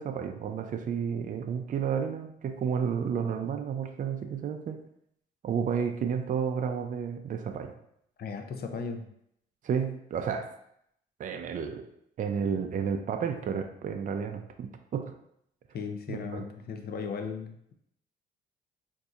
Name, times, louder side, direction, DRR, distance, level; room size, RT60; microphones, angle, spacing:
voice 1, 0.0-4.8 5.4-7.7 9.6-10.5 11.2-11.9 12.2-15.1 16.1-16.4, right 7 dB, 40° right, 6 dB, 0.4 m, -31 dB
voice 2, 8.2-9.1 15.7-17.7, left 5 dB, 50° left, 5 dB, 0.5 m, -36 dB
4.0 x 2.6 x 2.4 m, 0.73 s
cardioid pair, 90°, 20 cm